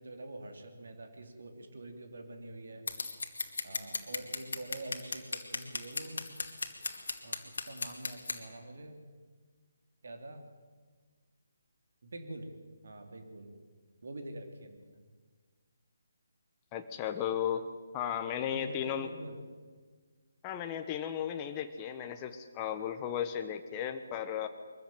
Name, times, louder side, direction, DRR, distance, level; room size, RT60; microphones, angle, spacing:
voice 1, 0.0-2.9 3.6-6.3 7.2-9.0 10.0-10.4 12.0-12.5 12.8-13.5 14.0-15.0 18.4-19.4, right 1 dB, 65° right, 5 dB, 3.2 m, -45 dB
Scissors, 2.9-8.4, left 3 dB, 65° left, 2.1 m, -37 dB
voice 2, 16.7-17.7 17.9-19.1 20.4-24.5, left 9 dB, 20° left, 6 dB, 1.2 m, -35 dB
23.0 x 14.5 x 9.3 m, 1.5 s
figure-of-eight pair, 145°, 0 cm